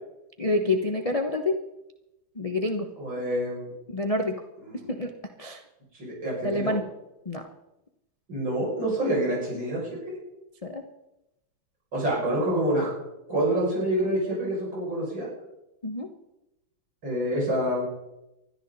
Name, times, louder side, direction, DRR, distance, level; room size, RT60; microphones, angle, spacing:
voice 1, 0.4-1.5 2.3-3.2 3.9-4.4 4.7-5.1 5.4-5.6 6.4-6.9 7.2-7.5 10.6-10.8 15.8-16.1, left 2 dB, 30° left, 4 dB, 0.6 m, -28 dB
voice 2, 3.0-3.7 4.8-4.9 5.9-6.8 8.3-10.1 11.9-12.9 13.3-15.3 17.0-17.9, right 1 dB, 65° right, -5 dB, 7.6 m, -27 dB
20.5 x 13.5 x 4.1 m, 0.92 s
omnidirectional pair, 2.2 m